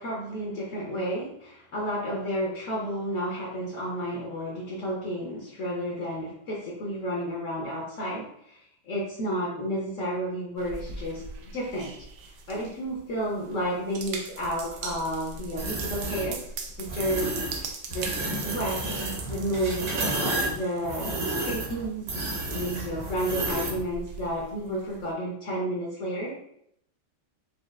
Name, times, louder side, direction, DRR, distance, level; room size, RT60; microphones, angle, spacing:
voice 1, 0.0-11.2 11.5-11.9 12.5-16.4 16.8-19.9 20.5-26.4, equal, 80° left, -3 dB, 0.7 m, -31 dB
sound 1, 10.6-25.1, right 4 dB, 85° right, 0.9 m, -42 dB
sound 2, 15.6-16.3 16.9-17.6 17.9-23.8, right 2 dB, 60° right, 1.0 m, -31 dB
5.2 x 2.3 x 2.4 m, 0.72 s
omnidirectional pair, 2.4 m